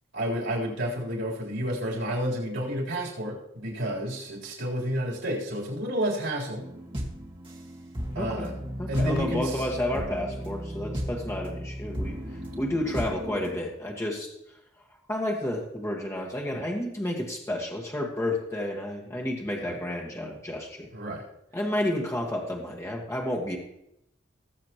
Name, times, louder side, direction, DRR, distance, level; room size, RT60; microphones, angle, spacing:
voice 1, 0.1-6.6 8.1-8.5 8.9-9.6 16.5-16.6 19.6-19.8 20.9-21.2, equal, 75° right, -3 dB, 3.8 m, -30 dB
sound 1, 6.5-13.6, equal, 25° right, 1.8 m, -35 dB
voice 2, 8.2-8.5 8.8-12.2 12.6-14.3 15.1-20.9 21.5-23.6, left 1 dB, 15° left, -2 dB, 1.6 m, -31 dB
sound 2, 8.9-9.3, left 5 dB, 50° left, 0.4 m, -39 dB
20.0 x 7.4 x 3.0 m, 0.82 s
head